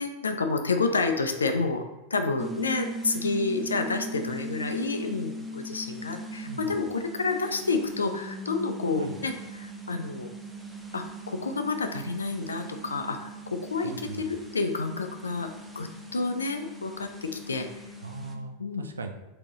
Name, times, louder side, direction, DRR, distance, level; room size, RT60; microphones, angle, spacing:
voice 1, 0.0-1.8 2.1-10.3 10.9-15.5 15.8-17.8 18.6-18.8, left 4 dB, 75° left, 6 dB, 0.4 m, -29 dB
sound 1, 2.4-18.3, right 1 dB, 5° right, 0.5 m, -40 dB
voice 2, 6.4-6.8 9.0-9.2 13.8-14.3 18.0-19.1, right 3 dB, 75° right, 6 dB, 0.4 m, -38 dB
3.7 x 2.8 x 3.6 m, 1.1 s
figure-of-eight pair, 90°, 0 cm